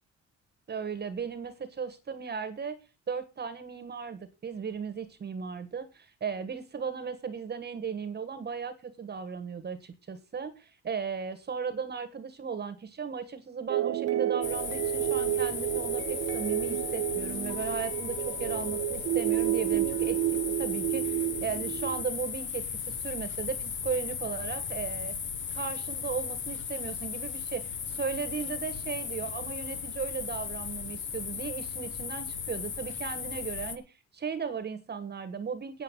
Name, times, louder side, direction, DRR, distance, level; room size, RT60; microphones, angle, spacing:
voice 1, 0.7-2.8 3.1-25.2 25.5-35.8, right 6 dB, 35° right, 10 dB, 1.4 m, -36 dB
sound 1, 13.7-22.0, right 14 dB, 55° right, 0.5 m, -30 dB
sound 2, 14.4-33.8, left 7 dB, 40° left, 1.1 m, -36 dB
9.2 x 7.8 x 7.2 m, 0.30 s
cardioid pair, 145°, 29 cm